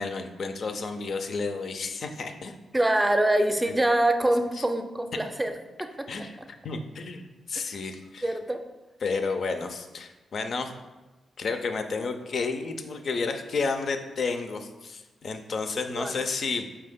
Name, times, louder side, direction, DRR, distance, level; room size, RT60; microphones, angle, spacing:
voice 1, 0.0-2.6 3.7-3.8 4.5-4.6 6.1-8.3 9.0-10.7 11.4-16.7, left 4 dB, 65° left, 6 dB, 0.4 m, -31 dB
voice 2, 2.7-5.5 6.0-6.1 8.2-8.6 15.8-16.2, right 1 dB, 15° right, 6 dB, 0.5 m, -24 dB
4.7 x 2.8 x 3.5 m, 1.1 s
hypercardioid pair, 40°, 0 cm